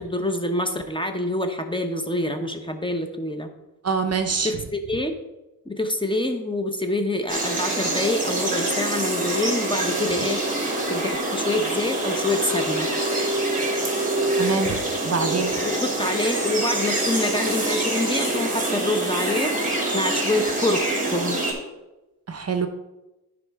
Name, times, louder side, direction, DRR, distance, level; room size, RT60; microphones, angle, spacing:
voice 1, 0.0-3.5 4.4-5.1 5.7-12.9 15.6-19.5 19.9-20.8 21.1-21.4, left 1 dB, 15° left, 6 dB, 0.9 m, -26 dB
voice 2, 3.8-4.6 14.4-14.8 15.0-15.5 22.3-22.7, right 5 dB, 40° right, 7 dB, 0.8 m, -25 dB
sound 1, 7.3-21.5, right 1 dB, 20° right, 2.6 m, -25 dB
13.5 x 5.4 x 3.6 m, 1.0 s
cardioid pair, 95°, 38 cm